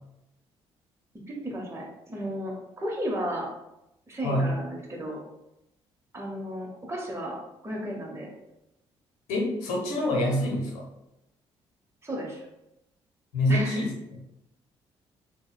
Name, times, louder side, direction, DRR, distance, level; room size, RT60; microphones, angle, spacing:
voice 1, 1.3-3.5 4.1-5.2 6.1-7.4 7.6-8.3 12.0-12.4 13.5-13.8, right 1 dB, 20° right, -2 dB, 0.9 m, -34 dB
voice 2, 4.2-4.6 9.3-10.9 13.3-14.2, left 1 dB, 75° left, -1 dB, 0.8 m, -26 dB
3.8 x 2.2 x 2.2 m, 0.89 s
hypercardioid pair, 45°, 14 cm